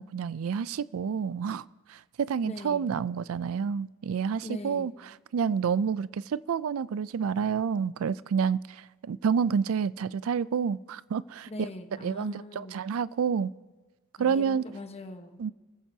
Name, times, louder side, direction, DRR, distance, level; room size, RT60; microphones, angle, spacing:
voice 1, 0.0-4.9 5.3-11.7 12.0-13.5 14.2-14.6 15.4-15.5, right 6 dB, 75° right, 0.4 m, -29 dB
voice 2, 2.4-2.9 4.4-4.9 11.5-12.8 14.2-15.4, left 1 dB, 30° left, 1.1 m, -41 dB
30.0 x 15.0 x 2.8 m
head